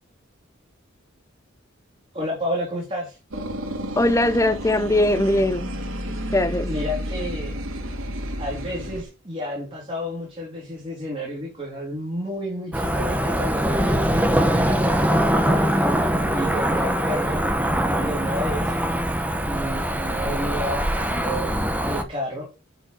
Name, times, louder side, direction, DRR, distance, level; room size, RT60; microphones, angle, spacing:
voice 1, 2.1-3.2 6.6-7.6 8.4-15.1 16.3-17.5 17.9-18.8 19.4-22.5, equal, 25° right, 3.5 m, -31 dB
sound 1, 3.3-9.0, equal, 75° right, 2.5 m, -31 dB
voice 2, 4.0-5.7 6.3-6.7, left 1 dB, 15° left, 0.6 m, -20 dB
Cricket / Motor vehicle (road), 12.7-22.0, equal, 5° right, 1.0 m, -22 dB
10.5 x 4.8 x 4.8 m
head